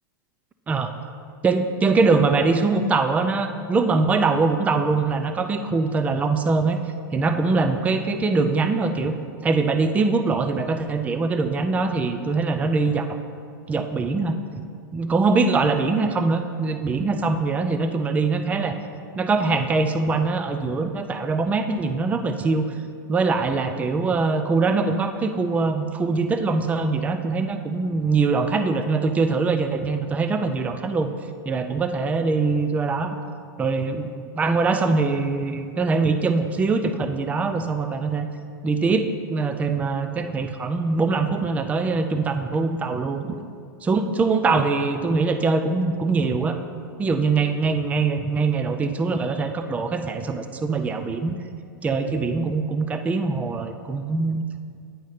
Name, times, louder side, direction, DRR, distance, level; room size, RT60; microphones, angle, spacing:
voice 1, 1.4-6.8 7.1-9.2 9.4-13.2 13.7-14.3 14.9-18.8 19.1-22.7 23.1-31.1 31.4-33.2 33.6-34.1 34.3-38.3 38.6-43.3 43.8-46.6 47.0-51.4 51.8-54.4, right 4 dB, 15° right, 8 dB, 0.3 m, -23 dB
9.3 x 4.1 x 4.9 m, 2.3 s
hypercardioid pair, 125°, 11 cm